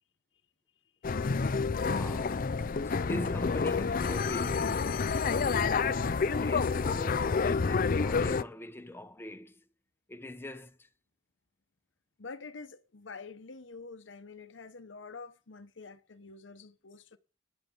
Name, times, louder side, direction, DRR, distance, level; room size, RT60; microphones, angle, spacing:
sound 1, 1.0-8.4, left 5 dB, 50° left, 0.5 m, -29 dB
voice 1, 1.3-5.0 5.5-9.6 10.1-10.9, left 1 dB, 10° left, 0.9 m, -43 dB
voice 2, 12.2-17.2, left 4 dB, 80° left, 0.9 m, -47 dB
13.5 x 9.5 x 5.2 m
head